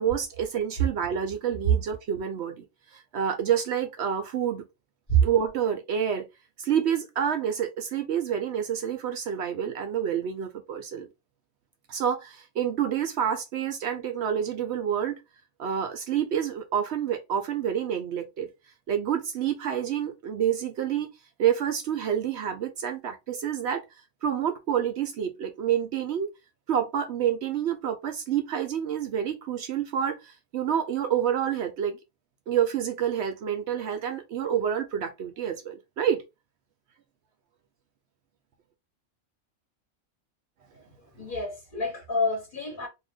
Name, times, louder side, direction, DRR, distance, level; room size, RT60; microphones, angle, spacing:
voice 1, 0.0-2.6 2.9-4.6 5.2-6.3 6.6-11.1 11.9-15.2 15.6-18.5 18.9-21.1 21.4-23.8 24.2-26.3 26.7-32.0 32.5-36.2, right 9 dB, 65° right, 0.7 m, -28 dB
voice 2, 41.1-42.9, right 2 dB, 40° left, 1.3 m, -27 dB
2.7 x 2.5 x 3.4 m
omnidirectional pair, 1.4 m